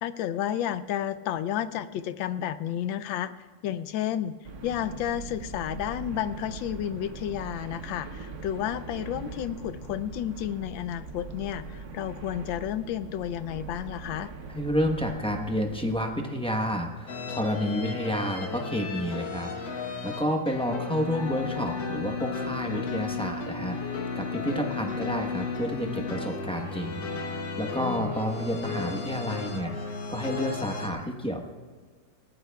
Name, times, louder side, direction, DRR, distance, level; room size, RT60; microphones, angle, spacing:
voice 1, 0.0-3.3 3.6-4.4 4.6-14.3 27.8-28.2, left 10 dB, 80° left, 13 dB, 1.4 m, -31 dB
sound 1, 4.4-16.1, right 4 dB, 50° right, 1.0 m, -41 dB
voice 2, 14.5-27.1 27.3-31.4, equal, 5° left, 2 dB, 0.5 m, -30 dB
sound 2, 17.1-30.9, left 4 dB, 65° left, 1.7 m, -34 dB
20.0 x 17.0 x 2.3 m, 1.5 s
omnidirectional pair, 2.1 m